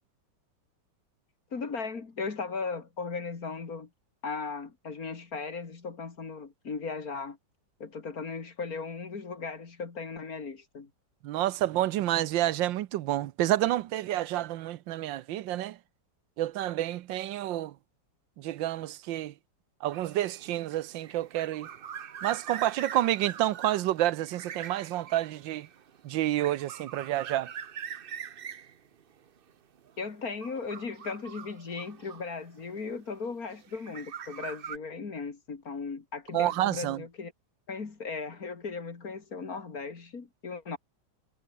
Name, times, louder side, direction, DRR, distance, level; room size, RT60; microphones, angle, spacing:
voice 1, 1.5-3.9 4.2-7.4 7.8-10.9 30.0-37.3 37.7-40.8, left 4 dB, 50° left, 2.8 m, -37 dB
voice 2, 11.2-15.8 16.4-17.7 18.4-19.3 19.8-21.7 22.2-25.7 26.0-27.5 36.3-37.0, right 14 dB, 80° right, 1.4 m, -29 dB
sound 1, 19.9-32.8 33.5-34.8, right 8 dB, 60° right, 0.5 m, -44 dB
omnidirectional pair, 2.0 m